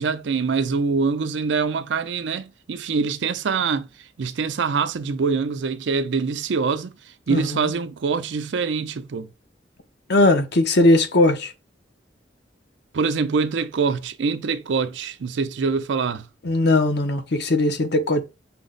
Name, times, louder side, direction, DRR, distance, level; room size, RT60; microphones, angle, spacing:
voice 1, 0.0-3.9 4.2-6.9 7.3-9.3 12.9-16.3, right 5 dB, 90° right, 0.5 m, -24 dB
voice 2, 7.3-7.6 10.1-11.5 16.4-18.2, left 2 dB, 65° left, 0.7 m, -19 dB
5.8 x 2.1 x 3.9 m
head